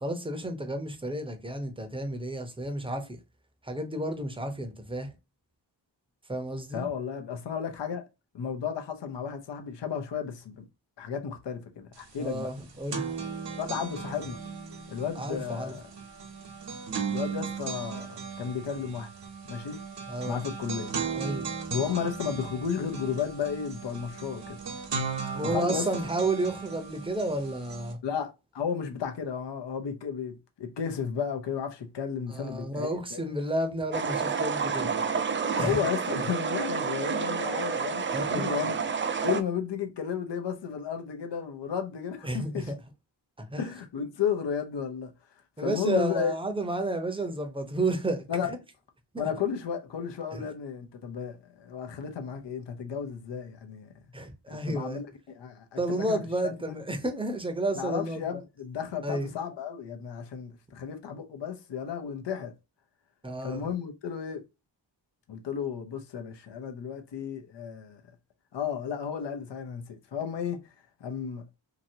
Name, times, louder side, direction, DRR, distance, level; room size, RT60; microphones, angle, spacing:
voice 1, 0.0-3.2 3.6-5.1 6.3-6.8 12.2-13.1 15.2-15.7 20.1-20.4 21.2-21.5 25.3-28.0 32.3-34.9 35.6-35.8 38.1-38.5 42.2-42.8 43.4-43.7 45.6-48.2 49.1-49.3 54.1-55.0 55.8-58.2 59.0-59.3 63.2-63.6, right 1 dB, 10° right, 0.8 m, -31 dB
voice 2, 6.7-8.0 8.3-10.6 11.0-12.5 13.6-14.4 14.9-15.8 17.1-19.1 19.5-19.8 20.3-20.9 21.7-24.6 25.4-25.9 28.0-33.2 35.6-38.7 39.2-42.7 43.6-45.1 45.6-46.3 48.3-48.5 49.2-53.9 54.5-56.8 57.8-62.5 63.4-64.4 65.3-68.0 68.5-70.6 71.0-71.4, left 7 dB, 70° left, 0.7 m, -33 dB
sound 1, 12.0-12.1 12.4-27.9, right 5 dB, 65° right, 1.0 m, -37 dB
sound 2, 33.9-39.4, right 5 dB, 30° right, 0.3 m, -29 dB
2.9 x 2.7 x 2.7 m
wide cardioid pair, 70°, 45 cm